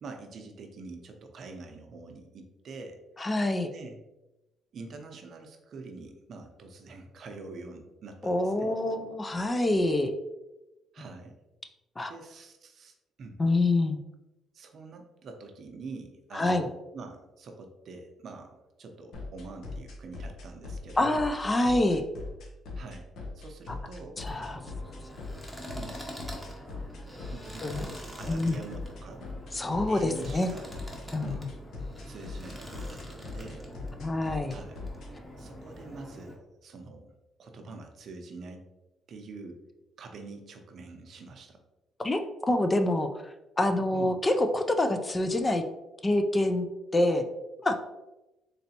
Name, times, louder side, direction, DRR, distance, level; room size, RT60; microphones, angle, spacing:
voice 1, 0.0-3.0 3.7-4.0 4.7-8.8 10.9-11.4 12.1-13.4 14.5-21.2 22.8-23.1 23.3-24.2 25.8-26.0 27.3-29.2 29.9-30.7 31.2-31.5 32.1-33.7 34.5-34.8 35.4-37.1 37.4-38.6 39.1-39.6 40.0-41.6 43.9-44.1, right 3 dB, 60° right, 4 dB, 0.6 m, -45 dB
voice 2, 3.2-3.7 8.2-10.1 12.0-12.1 13.4-14.0 16.3-16.7 21.0-22.0 24.2-24.6 27.6-27.8 28.3-28.6 29.5-30.5 31.1-31.4 34.0-34.5 42.0-45.6 46.0-46.7 46.9-47.2 47.6-47.8, left 1 dB, 25° left, 7 dB, 0.4 m, -26 dB
sound 1, 19.1-35.1, left 3 dB, 70° left, 0.8 m, -39 dB
sound 2, 24.2-36.4, equal, 10° left, 0.9 m, -45 dB
3.9 x 3.2 x 2.8 m, 0.99 s
cardioid pair, 90°, 0 cm